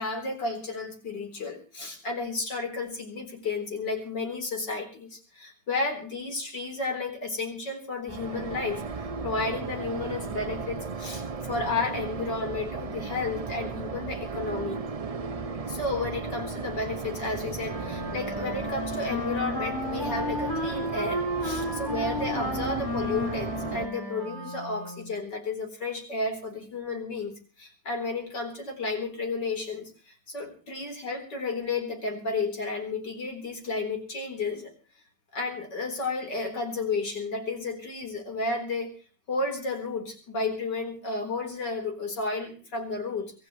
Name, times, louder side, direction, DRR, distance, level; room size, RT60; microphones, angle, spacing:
voice 1, 0.0-14.8 15.7-34.7 35.3-38.9 39.3-43.3, left 3 dB, 85° left, 4 dB, 4.6 m, -32 dB
sound 1, 8.1-23.9, right 4 dB, 60° right, 0.3 m, -35 dB
Wind instrument woodwind instrument, 17.6-25.2, left 1 dB, 10° left, 6.2 m, -33 dB
24.5 x 15.0 x 3.2 m, 0.37 s
omnidirectional pair, 1.8 m